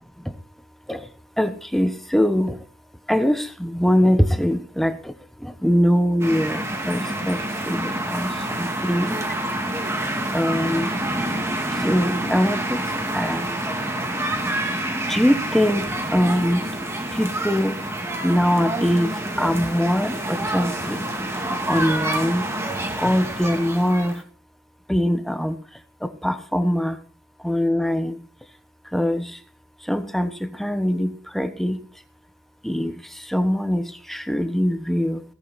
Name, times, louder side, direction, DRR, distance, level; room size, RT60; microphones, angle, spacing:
voice 1, 1.4-2.6 3.1-5.1 5.4-9.2 10.3-10.9 11.7-12.8 13.1-13.5 15.1-16.6 17.1-17.8 18.2-21.0 21.7-22.4 23.0-24.2 24.9-25.6 26.0-27.0 27.4-28.2 28.9-29.4 29.8-31.8 32.6-35.2, equal, ahead, 9 dB, 1.1 m, -22 dB
sound 1, 6.2-24.2, right 1 dB, 15° right, 2.5 m, -27 dB
17.5 x 9.4 x 4.2 m, 0.40 s
head